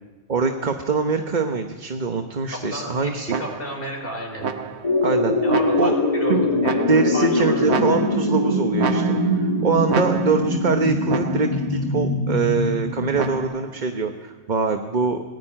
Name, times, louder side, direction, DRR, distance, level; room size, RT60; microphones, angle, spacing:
voice 1, 0.3-3.4 5.0-5.4 5.8-5.9 6.3-6.5 6.9-9.0 9.3-15.2, right 4 dB, 45° right, 5 dB, 1.2 m, -23 dB
voice 2, 2.7-4.5 5.4-6.8 7.1-7.6, left 1 dB, 60° left, 0 dB, 4.8 m, -32 dB
sound 1, 3.3-3.9 4.4-5.0 5.5-6.1 6.6-7.3 7.7-8.4 8.8-9.5 9.9-10.6 11.1-11.7 13.2-13.8, right 6 dB, 85° right, 1.3 m, -30 dB
sound 2, 4.8-13.4, left 1 dB, 30° left, 2.5 m, -23 dB
20.0 x 16.5 x 8.9 m, 1.3 s
omnidirectional pair, 1.1 m